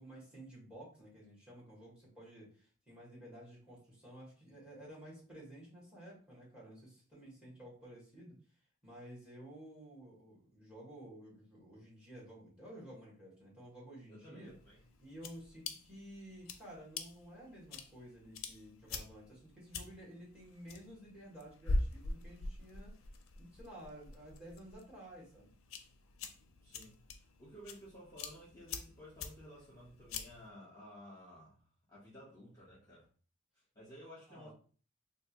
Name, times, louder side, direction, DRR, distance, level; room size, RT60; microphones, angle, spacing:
voice 1, 0.0-8.4 8.8-14.5 15.0-22.9 23.4-25.5 34.3-34.5, right 1 dB, 5° right, -5 dB, 1.6 m, -53 dB
voice 2, 14.1-14.8 26.6-26.9 27.4-33.1 33.5-34.5, equal, 15° left, -8 dB, 1.2 m, -54 dB
sound 1, 14.5-30.5, left 2 dB, 75° left, 0.5 m, -44 dB
3.4 x 2.5 x 2.8 m, 0.41 s
head